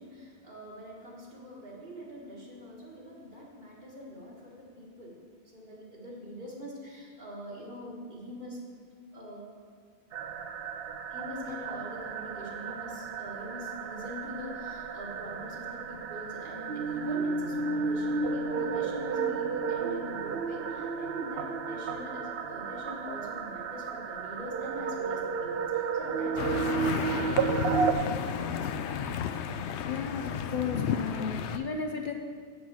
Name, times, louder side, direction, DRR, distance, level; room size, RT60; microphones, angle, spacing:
voice 1, 0.0-5.2 5.4-8.6 9.1-9.4 11.1-28.1 28.4-28.8, equal, 50° right, -4 dB, 2.0 m, -43 dB
sound 1, 10.1-27.9, right 5 dB, 70° right, 0.8 m, -32 dB
sound 2, 26.4-31.6, left 7 dB, 85° left, 0.9 m, -32 dB
voice 2, 29.8-32.1, left 5 dB, 55° left, 3 dB, 0.7 m, -34 dB
7.8 x 7.0 x 5.5 m, 2.1 s
omnidirectional pair, 1.1 m